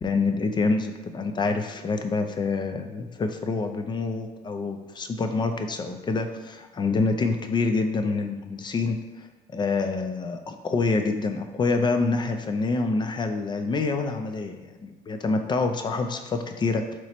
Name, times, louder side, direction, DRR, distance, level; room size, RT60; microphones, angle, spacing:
voice 1, 0.0-9.3 9.5-16.8, left 3 dB, 25° left, 6 dB, 0.3 m, -26 dB
3.0 x 3.0 x 4.3 m, 1.2 s
cardioid pair, 110°, 17 cm